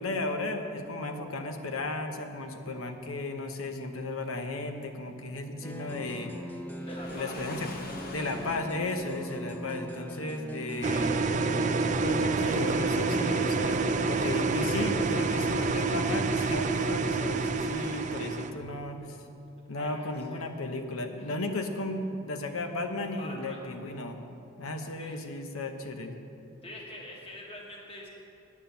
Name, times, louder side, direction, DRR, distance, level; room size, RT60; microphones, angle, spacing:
voice 1, 0.0-6.3 7.1-7.7 8.1-11.1 11.9-19.2 19.7-24.3 24.6-26.1, left 2 dB, 85° left, 6 dB, 1.0 m, -35 dB
sound 1, 5.6-15.5, equal, 10° left, 0.6 m, -40 dB
Waves surf, 6.8-8.9, left 2 dB, 45° left, 1.0 m, -44 dB
voice 2, 6.8-7.4 19.7-20.5 21.2-21.3 23.2-23.6 25.0-25.2 26.6-28.1, left 1 dB, 25° left, -1 dB, 1.4 m, -45 dB
sound 2, 10.8-18.5, right 4 dB, 35° right, 0.4 m, -28 dB
9.7 x 8.7 x 6.8 m, 2.7 s
head